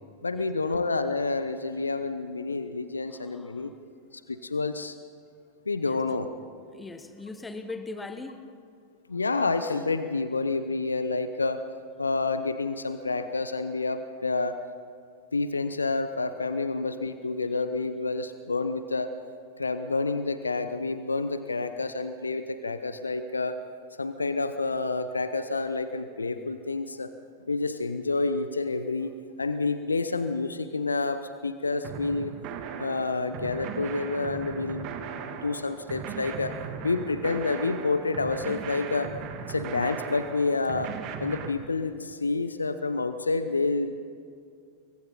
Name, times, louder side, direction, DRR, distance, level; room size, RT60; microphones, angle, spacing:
voice 1, 0.2-3.7 4.1-4.9 5.7-6.3 9.1-11.6 12.0-14.6 15.3-19.1 19.6-23.6 24.0-27.1 27.5-29.1 29.4-32.3 32.8-34.9 35.3-36.5 36.8-39.1 39.5-40.9 41.2-44.0, left 3 dB, 80° left, 11 dB, 0.9 m, -29 dB
voice 2, 3.1-3.9 4.3-4.4 5.8-6.0 6.7-8.5, left 3 dB, 10° left, 9 dB, 1.3 m, -41 dB
sound 1, 31.8-41.5, right 7 dB, 40° right, 1.9 m, -38 dB
28.0 x 23.0 x 4.2 m, 2.3 s
figure-of-eight pair, 90°, 0 cm